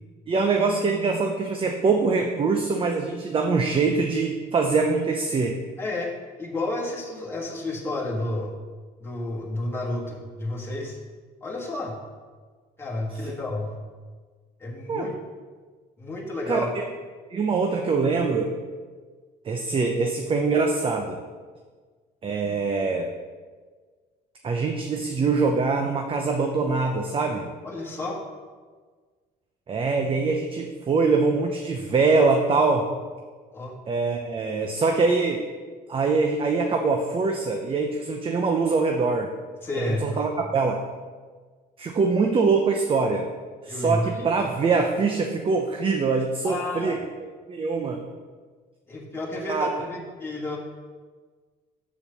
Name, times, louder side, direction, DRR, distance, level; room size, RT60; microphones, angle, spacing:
voice 1, 0.3-5.6 13.2-13.3 14.9-15.1 16.5-16.6 17.3-18.5 19.4-21.2 22.2-23.1 24.4-27.5 29.7-32.8 33.9-35.4 35.9-39.3 39.8-40.8 41.8-43.3 43.6-47.0 47.5-48.0 49.5-49.8, right 4 dB, 30° right, 3 dB, 0.7 m, -23 dB
voice 2, 5.8-8.5 9.0-11.0 11.4-12.0 12.8-13.7 14.6-15.1 16.0-16.7 27.6-28.2 33.5-33.7 39.6-40.2 43.7-44.3 46.4-47.0 48.9-50.6, left 2 dB, 15° left, -4 dB, 1.6 m, -31 dB
7.1 x 4.5 x 6.7 m, 1.5 s
cardioid pair, 110°, 17 cm